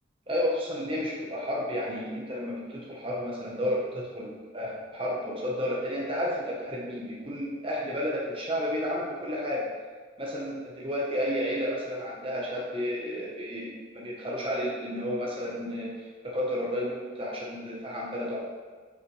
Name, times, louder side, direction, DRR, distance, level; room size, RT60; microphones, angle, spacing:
voice 1, 0.3-9.7 10.2-15.9 16.2-18.4, equal, 25° right, -4 dB, 1.3 m, -31 dB
9.0 x 5.7 x 3.4 m, 1.5 s
head